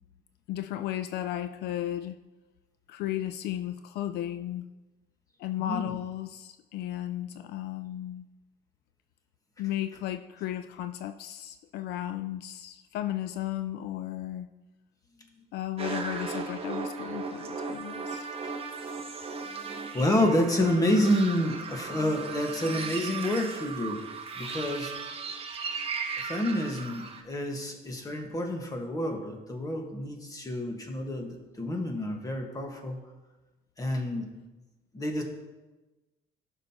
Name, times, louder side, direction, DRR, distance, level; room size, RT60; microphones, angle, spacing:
voice 1, 0.5-2.2 2.9-4.7 5.4-8.2 9.6-14.5 15.5-18.3, left 12 dB, 75° left, 10 dB, 0.4 m, -34 dB
voice 2, 5.6-5.9 18.8-18.9 19.4-24.0 24.4-24.9 26.2-33.0 33.8-34.2 34.9-35.2, left 1 dB, 20° left, 2 dB, 1.6 m, -29 dB
sound 1, 15.8-27.2, right 4 dB, 35° right, 1.0 m, -36 dB
14.0 x 6.2 x 3.0 m, 1.1 s
cardioid pair, 110°, 17 cm